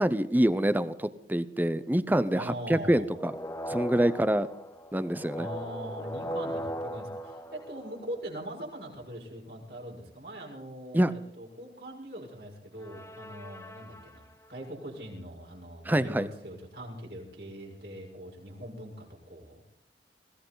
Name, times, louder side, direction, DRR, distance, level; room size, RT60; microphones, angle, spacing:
voice 1, 0.0-3.3 3.7-4.5 4.9-5.5 10.9-11.1 15.9-16.3, right 1 dB, 10° right, 14 dB, 0.6 m, -26 dB
voice 2, 2.3-3.2 5.3-19.7, right 1 dB, 65° right, 0 dB, 6.1 m, -42 dB
sound 1, 3.1-8.4 12.8-14.4, equal, 15° left, 1.2 m, -39 dB
22.0 x 16.5 x 3.9 m, 0.73 s
head